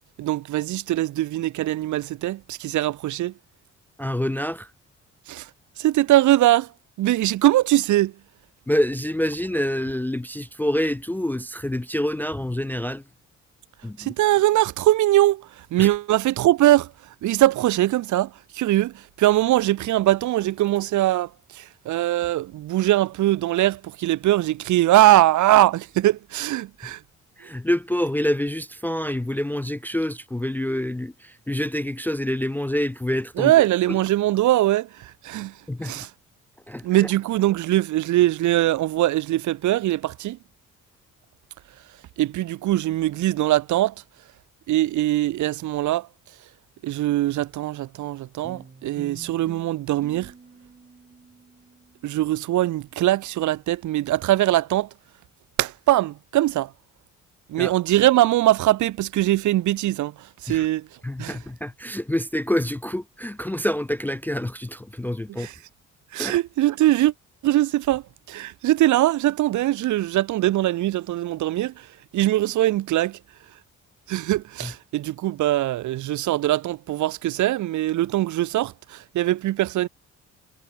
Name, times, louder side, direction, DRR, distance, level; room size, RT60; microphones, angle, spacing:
voice 1, 0.2-3.3 5.3-5.5 5.8-6.7 7.0-8.1 14.0-16.9 17.2-27.0 33.4-35.5 35.8-36.1 36.8-40.4 42.2-43.9 44.7-46.1 46.8-50.3 52.0-54.9 55.6-56.7 57.5-60.1 60.4-60.9 61.2-61.4 65.4-65.5 66.1-67.1 67.4-71.9 72.1-73.2 74.1-79.9, right 15 dB, 75° right, 0.9 m, -21 dB
voice 2, 4.0-4.7 8.7-13.0 13.8-14.1 15.8-15.9 26.8-26.9 27.4-33.5 33.9-34.0 35.7-36.0 36.7-37.1 57.6-57.7 60.5-60.7 61.0-65.5 66.2-66.4 74.6-74.7, left 1 dB, 5° left, 0.3 m, -27 dB
sound 1, 48.4-53.1, right 4 dB, 30° right, 5.8 m, -47 dB
cardioid pair, 90°, 30 cm